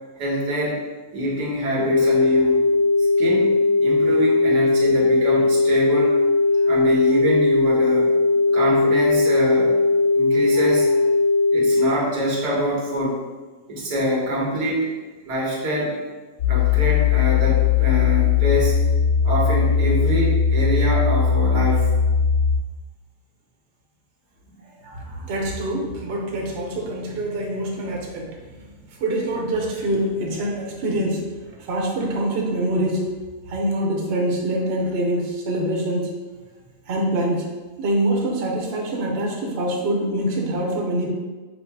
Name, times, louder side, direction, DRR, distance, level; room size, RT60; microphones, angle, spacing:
voice 1, 0.2-0.8 1.1-2.6 3.2-6.3 6.6-8.1 8.5-9.7 10.1-11.0 11.5-13.2 13.7-14.9 15.2-16.0 16.5-18.7 19.2-21.9 24.6-25.2 41.0-41.1, equal, 85° right, -4 dB, 1.7 m, -25 dB
sound 1, 1.8-11.8, left 3 dB, 35° left, 1.6 m, -18 dB
sound 2, 16.4-22.6, left 7 dB, 60° left, 0.9 m, -19 dB
voice 2, 24.9-33.2 33.5-36.1 36.9-37.5 37.8-41.1, right 1 dB, 50° right, -1 dB, 0.9 m, -25 dB
5.5 x 2.1 x 4.6 m, 1.3 s
omnidirectional pair, 1.7 m